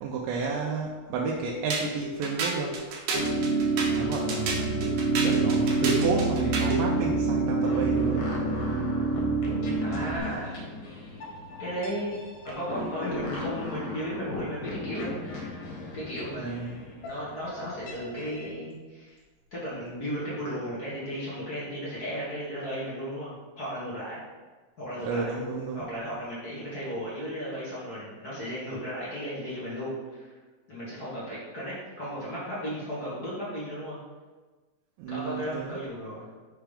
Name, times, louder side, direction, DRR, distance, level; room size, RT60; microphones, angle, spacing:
voice 1, 0.0-2.8 3.9-8.3 16.4-16.8 25.0-25.8 35.0-35.8, right 4 dB, 85° right, -2 dB, 2.3 m, -31 dB
sound 1, 1.7-6.9, right 4 dB, 70° right, 2.1 m, -31 dB
sound 2, 3.1-10.2, right 3 dB, 80° left, 1.2 m, -26 dB
sound 3, 7.6-18.5, left 2 dB, 65° left, 2.5 m, -37 dB
voice 2, 9.8-10.6 11.6-12.1 12.4-15.1 15.9-19.2 19.5-24.2 24.8-25.3 25.7-30.3 30.7-34.0 35.1-36.3, equal, 50° left, -9 dB, 1.1 m, -35 dB
5.8 x 3.4 x 5.1 m, 1.3 s
omnidirectional pair, 4.0 m